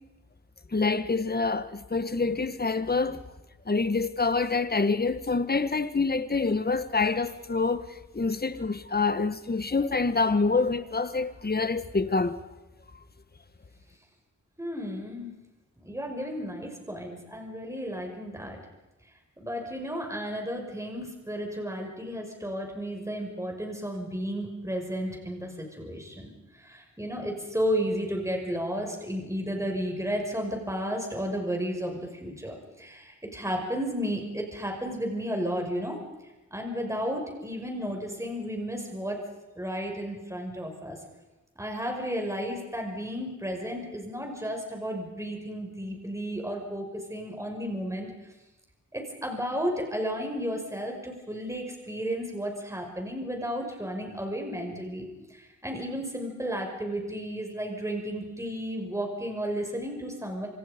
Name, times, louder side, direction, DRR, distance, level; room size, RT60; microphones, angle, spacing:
voice 1, 0.7-3.2 3.6-12.4, left 4 dB, 30° left, 1.6 m, -26 dB
voice 2, 14.6-15.3 15.8-18.6 19.4-36.0 36.5-39.2 39.6-41.0 41.6-48.1 48.9-60.5, equal, 10° right, 6.0 m, -33 dB
26.5 x 26.5 x 5.3 m
cardioid pair, 75°, 30 cm